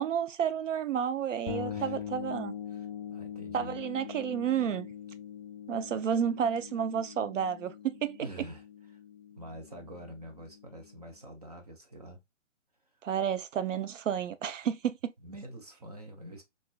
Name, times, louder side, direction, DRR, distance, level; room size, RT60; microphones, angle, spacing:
voice 1, 0.0-2.5 3.5-4.9 5.7-8.2 13.0-15.1, right 8 dB, 75° right, 0.6 m, -31 dB
sound 1, 1.5-11.1, left 8 dB, 45° left, 1.0 m, -43 dB
voice 2, 1.6-2.0 2.7-3.8 8.2-9.0 9.4-12.2 12.9-13.0 15.2-16.4, right 1 dB, 30° right, 0.6 m, -46 dB
4.0 x 2.5 x 2.2 m
hypercardioid pair, 165°, 38 cm